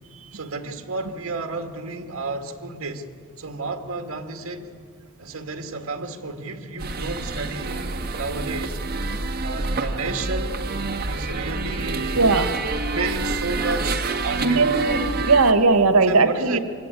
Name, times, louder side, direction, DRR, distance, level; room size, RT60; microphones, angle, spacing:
voice 1, 0.3-3.0 3.4-4.7 5.2-8.8 9.4-10.6 11.1-12.2 12.9-14.7 16.1-16.6, right 3 dB, 70° right, 2.0 m, -32 dB
sound 1, 6.8-15.5, right 3 dB, 45° right, 1.6 m, -27 dB
voice 2, 12.1-12.5 14.4-16.6, right 3 dB, 85° right, 1.5 m, -18 dB
25.5 x 23.0 x 9.3 m
head